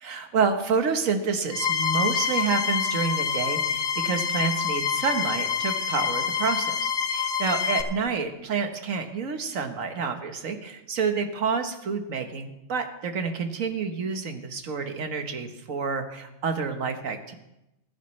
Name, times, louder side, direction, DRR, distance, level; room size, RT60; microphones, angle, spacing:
voice 1, 0.0-17.3, right 5 dB, 75° right, 6 dB, 1.6 m, -28 dB
sound 1, 1.5-7.8, left 7 dB, 85° left, 1.5 m, -26 dB
20.5 x 10.0 x 3.2 m, 0.90 s
omnidirectional pair, 1.4 m